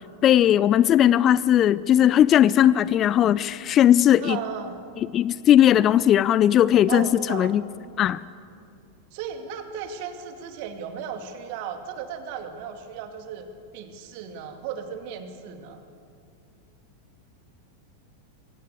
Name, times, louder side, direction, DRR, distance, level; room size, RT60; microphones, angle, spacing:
voice 1, 0.2-4.4 5.1-7.6 8.0-8.2, left 11 dB, 30° left, 19 dB, 0.4 m, -18 dB
voice 2, 4.2-4.8 6.9-7.5 9.1-15.8, right 7 dB, 45° right, 7 dB, 2.2 m, -35 dB
22.5 x 17.5 x 8.3 m, 2.4 s
figure-of-eight pair, 90°, 0 cm